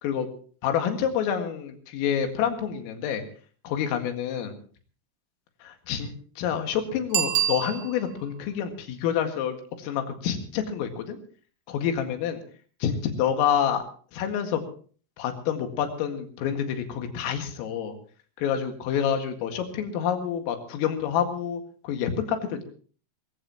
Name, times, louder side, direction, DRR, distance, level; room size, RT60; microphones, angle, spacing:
voice 1, 0.6-3.2 3.6-4.5 5.6-11.2 11.7-12.4 12.8-13.8 14.1-14.6 15.2-18.0 18.4-22.6, left 8 dB, 90° left, 5 dB, 4.6 m, -28 dB
Bicycle bell, 7.1-8.3 13.7-13.8, right 12 dB, 65° right, 3.0 m, -27 dB
24.5 x 15.0 x 3.0 m, 0.43 s
omnidirectional pair, 5.8 m